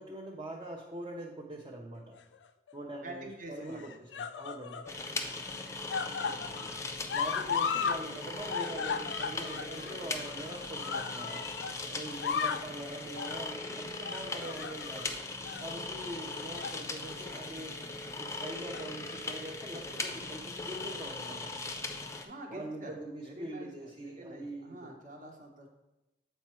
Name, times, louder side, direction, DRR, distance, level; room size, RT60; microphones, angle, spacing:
voice 1, 0.0-2.2 2.7-4.9 7.1-15.2 15.6-17.8 18.1-21.5 22.5-24.9, right 1 dB, 30° right, -1 dB, 0.6 m, -43 dB
sound 1, 2.2-2.7 3.6-4.9 5.3-8.0 8.3-11.7 12.1-12.7 13.2-13.5 14.0-15.1 15.4-15.7 16.3-16.8 17.2-17.4 18.5-19.1 20.0-20.1, left 6 dB, 85° left, 0.4 m, -36 dB
voice 2, 2.8-3.9 6.0-6.7 22.2-22.9 23.2-25.7, right 1 dB, 45° right, 2 dB, 1.0 m, -47 dB
sound 2, 4.9-22.3, left 3 dB, 15° left, 0.5 m, -39 dB
7.2 x 4.5 x 4.3 m, 0.97 s
head